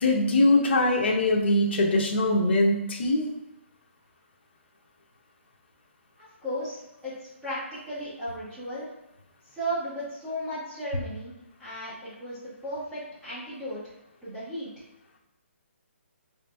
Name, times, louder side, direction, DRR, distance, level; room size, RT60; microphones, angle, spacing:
voice 1, 0.0-3.3, left 2 dB, 50° left, 1 dB, 0.7 m, -22 dB
voice 2, 6.4-7.1 7.4-8.9 9.5-11.3 11.6-13.8 14.2-14.7, equal, 5° right, -18 dB, 1.3 m, -35 dB
3.4 x 2.8 x 3.4 m, 0.90 s
hypercardioid pair, 170°, 7 cm